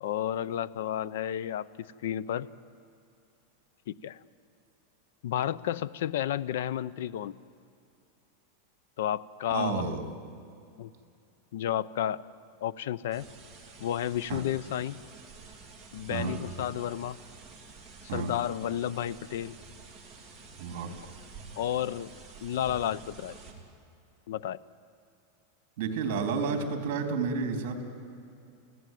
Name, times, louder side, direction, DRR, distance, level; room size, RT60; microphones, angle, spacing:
voice 1, 0.0-2.5 3.9-4.2 5.2-7.4 9.0-9.9 10.8-10.9 11.5-12.2 12.6-13.2 13.8-15.0 15.9-17.2 18.1-19.5 21.6-22.1 22.4-23.4 24.3-24.6, left 11 dB, 70° left, 19 dB, 0.7 m, -31 dB
voice 2, 9.5-10.1 14.3-14.4 16.1-16.3 18.1-18.3 20.6-20.9 25.8-27.8, right 5 dB, 50° right, 5 dB, 3.6 m, -31 dB
sound 1, 13.1-23.5, right 4 dB, 5° right, 3.1 m, -48 dB
29.0 x 17.0 x 9.3 m, 2.6 s
supercardioid pair, 170°, 0 cm